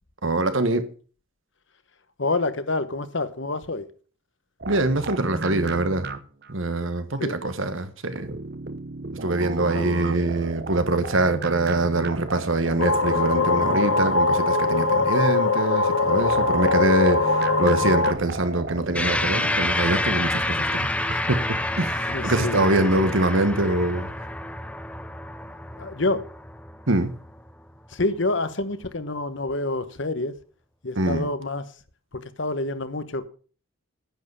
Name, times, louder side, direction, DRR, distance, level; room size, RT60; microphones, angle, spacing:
voice 1, 0.2-0.8 4.7-6.1 6.5-8.3 9.2-24.1 26.9-27.1 31.0-31.3, right 2 dB, 70° right, 1.4 m, -24 dB
voice 2, 2.2-3.8 7.2-7.4 9.4-10.1 22.1-23.1 25.8-26.2 27.9-30.3 30.8-31.7 32.1-33.3, left 2 dB, 60° left, 1.1 m, -28 dB
sound 1, 4.6-6.5 8.2-14.5 16.2-19.7, right 3 dB, 50° right, 0.9 m, -34 dB
sound 2, 12.8-18.1, left 3 dB, 90° left, 1.4 m, -21 dB
sound 3, 18.9-27.6, left 1 dB, 5° left, 0.6 m, -28 dB
10.5 x 8.1 x 6.9 m
head